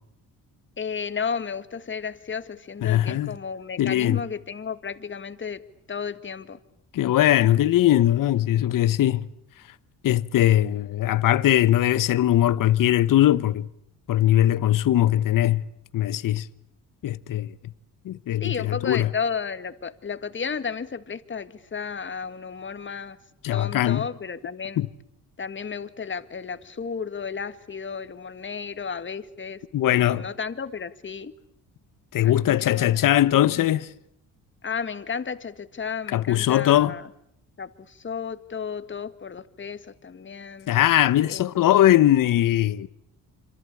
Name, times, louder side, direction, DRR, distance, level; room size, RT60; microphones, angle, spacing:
voice 1, 0.8-5.6 5.9-6.6 18.4-23.2 23.5-24.8 25.4-29.6 29.9-31.3 32.2-33.0 34.6-37.0 37.6-37.7 38.0-40.7 41.3-41.9, left 6 dB, 35° left, 1.9 m, -33 dB
voice 2, 2.8-3.3 3.8-4.2 6.9-9.2 10.0-13.7 14.1-15.6 15.9-16.5 17.0-17.5 18.1-19.1 23.4-24.1 24.8-24.9 29.7-30.3 32.1-33.9 36.1-37.0 40.7-42.9, left 13 dB, 60° left, 1.0 m, -20 dB
27.0 x 26.0 x 8.5 m
cardioid pair, 90°, 36 cm